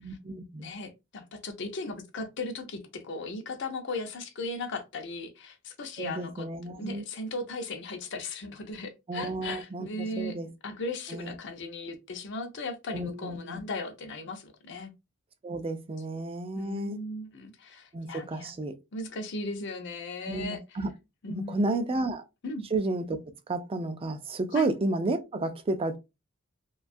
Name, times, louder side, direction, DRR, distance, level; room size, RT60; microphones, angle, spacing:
voice 1, 0.0-0.7 6.0-7.1 9.1-10.5 11.1-11.3 12.9-13.6 15.4-17.0 17.9-18.7 20.3-20.9 21.3-22.2 22.7-26.0, right 2 dB, 30° right, 0.4 m, -32 dB
voice 2, 0.6-6.4 6.8-10.4 10.6-14.9 16.5-18.5 18.9-20.6 21.2-21.9 22.4-22.7 24.5-24.7, left 2 dB, 60° left, 0.6 m, -37 dB
2.7 x 2.2 x 2.5 m
head